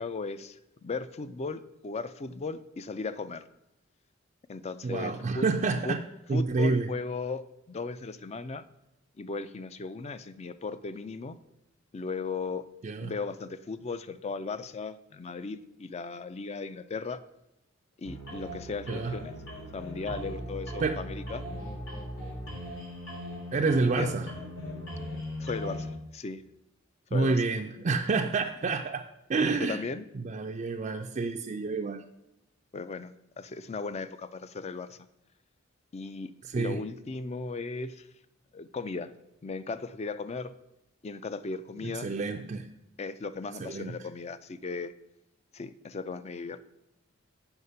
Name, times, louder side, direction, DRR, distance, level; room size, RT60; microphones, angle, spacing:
voice 1, 0.0-3.4 4.5-5.5 5.8-6.0 6.3-7.4 7.7-8.6 9.2-11.4 11.9-12.7 13.0-17.2 18.0-19.3 19.7-21.4 23.9-24.1 25.4-26.4 27.1-27.4 29.6-30.0 32.7-35.0 35.9-38.1 38.5-39.1 39.4-40.6 41.0-42.1 43.0-44.9 45.5-46.6, left 4 dB, 35° left, 13 dB, 0.4 m, -36 dB
voice 2, 4.8-6.0 6.3-6.9 12.8-13.1 18.9-19.2 20.8-21.0 23.5-24.3 27.1-29.0 29.3-29.8 30.2-32.0 36.5-36.8 41.8-42.7 43.6-43.9, right 3 dB, 40° right, 3 dB, 0.4 m, -28 dB
sound 1, 18.0-25.9, equal, 85° left, 3.1 m, -39 dB
8.0 x 5.7 x 5.5 m, 0.90 s
head